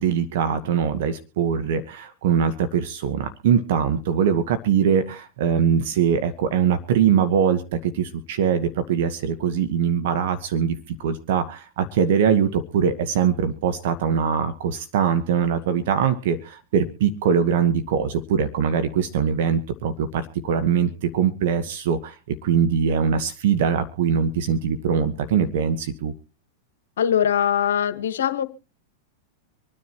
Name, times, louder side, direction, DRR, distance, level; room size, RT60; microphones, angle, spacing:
voice 1, 0.0-26.1, right 7 dB, 60° right, 10 dB, 1.2 m, -22 dB
voice 2, 27.0-28.4, left 9 dB, 70° left, 11 dB, 1.3 m, -21 dB
25.5 x 9.8 x 2.9 m, 0.34 s
hypercardioid pair, 100°, 0 cm